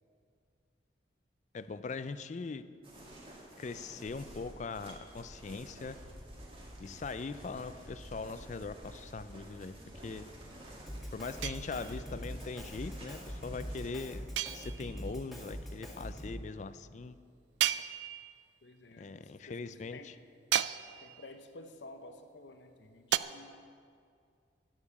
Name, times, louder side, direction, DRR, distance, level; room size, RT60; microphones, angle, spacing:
voice 1, 1.5-2.6 3.6-6.0 6.8-9.7 10.0-10.2 11.1-14.2 14.5-17.2 19.0-20.1, left 4 dB, 40° left, 13 dB, 0.4 m, -41 dB
sound 1, 2.8-14.0, right 1 dB, 30° right, 2.0 m, -50 dB
Drum kit, 10.9-16.5, equal, ahead, 2.1 m, -43 dB
sound 2, 11.4-12.2 14.4-15.1 17.6-18.5 20.5-21.3 23.1-23.2, right 11 dB, 80° right, 0.4 m, -34 dB
voice 2, 18.6-20.1 21.0-23.5, left 2 dB, 75° left, 7 dB, 0.8 m, -52 dB
11.5 x 9.3 x 6.9 m, 2.3 s
head